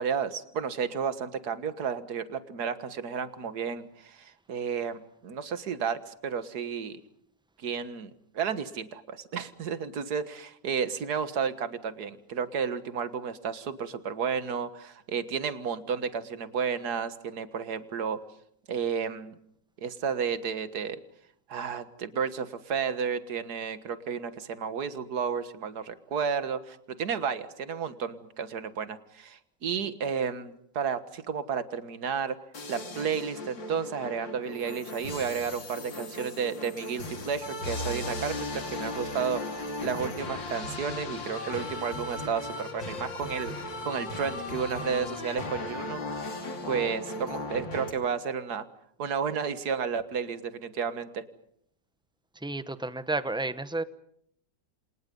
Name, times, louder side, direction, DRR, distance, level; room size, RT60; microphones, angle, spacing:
voice 1, 0.0-7.0 7.6-18.2 18.7-19.4 19.8-21.0 21.5-32.4 32.7-46.0 46.7-48.6 49.0-51.2, right 6 dB, 60° right, 12 dB, 2.0 m, -32 dB
sound 1, 32.5-47.9, left 2 dB, 90° left, 3.7 m, -37 dB
voice 2, 52.4-53.8, right 2 dB, 5° right, 13 dB, 0.5 m, -31 dB
29.0 x 27.0 x 5.4 m, 0.71 s
omnidirectional pair, 2.0 m